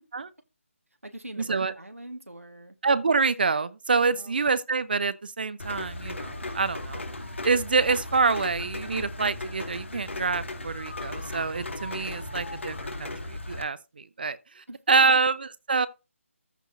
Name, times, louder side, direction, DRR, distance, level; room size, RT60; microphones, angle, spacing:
voice 1, 1.0-2.8 4.1-4.4 14.7-15.1, right 1 dB, 80° right, 1.8 m, -42 dB
voice 2, 2.8-7.0 7.4-15.9, right 4 dB, 45° right, 0.8 m, -26 dB
Rain, 5.6-13.6, left 2 dB, 60° left, 2.2 m, -36 dB
14.5 x 5.5 x 2.7 m
figure-of-eight pair, 155°, 7 cm